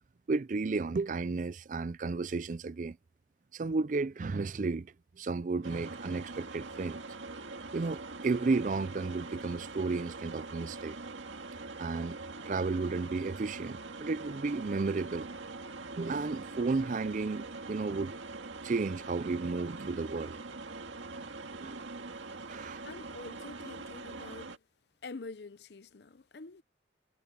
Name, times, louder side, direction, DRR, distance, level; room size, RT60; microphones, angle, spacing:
voice 1, 0.3-3.0 3.5-7.0 7.7-10.9 11.8-12.2 12.5-15.3 16.0-18.1 18.6-20.4 21.6-21.8 22.5-22.8, right 3 dB, 40° right, 0.4 m, -33 dB
sound 1, 5.6-24.6, right 3 dB, 90° right, 1.9 m, -43 dB
voice 2, 22.8-24.6 25.0-26.6, left 3 dB, 60° left, 0.7 m, -46 dB
head